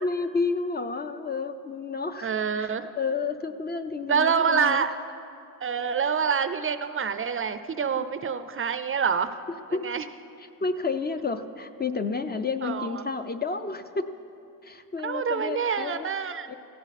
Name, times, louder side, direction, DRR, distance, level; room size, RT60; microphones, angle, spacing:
voice 1, 0.0-2.3 2.6-2.7 3.0-4.8 8.0-8.1 9.7-9.9 10.4-14.1 14.6-16.1 16.5-16.6, left 4 dB, 25° left, 9 dB, 0.4 m, -30 dB
voice 2, 2.2-2.9 4.1-4.9 5.6-9.4 9.8-10.0 12.6-13.0 15.0-16.5, right 6 dB, 35° right, 11 dB, 0.5 m, -26 dB
17.0 x 15.0 x 4.1 m, 2.7 s
cardioid pair, 145°, 38 cm